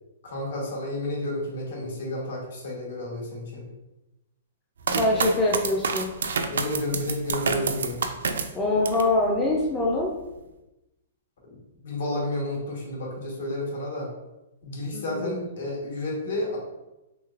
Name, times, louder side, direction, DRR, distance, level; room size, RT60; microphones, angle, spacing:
voice 1, 0.2-3.7 6.5-8.0 11.4-11.6 11.8-14.1 14.6-16.6, left 1 dB, 65° left, -2 dB, 1.2 m, -31 dB
sound 1, 4.8-9.1 9.6-10.2, right 5 dB, 85° right, 0.3 m, -28 dB
voice 2, 4.9-6.1 8.5-10.1 14.9-15.5, left 2 dB, 10° left, -3 dB, 0.3 m, -24 dB
3.2 x 3.0 x 2.4 m, 0.98 s
hypercardioid pair, 175°, 0 cm